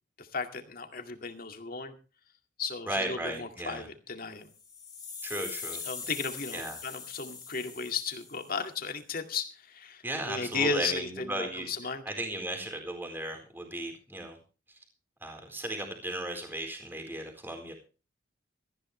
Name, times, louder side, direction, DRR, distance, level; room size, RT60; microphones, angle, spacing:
voice 1, 0.2-1.9 2.6-4.5 5.9-12.0, left 4 dB, 50° left, 5 dB, 2.1 m, -35 dB
voice 2, 2.9-3.9 5.2-5.8 6.5-6.8 10.0-11.7 12.1-14.4 14.7-14.8 15.2-17.7, right 1 dB, 10° right, 3 dB, 4.3 m, -35 dB
sound 1, 4.5-8.7, left 5 dB, 20° left, 3.2 m, -42 dB
18.5 x 14.5 x 3.3 m, 0.34 s
head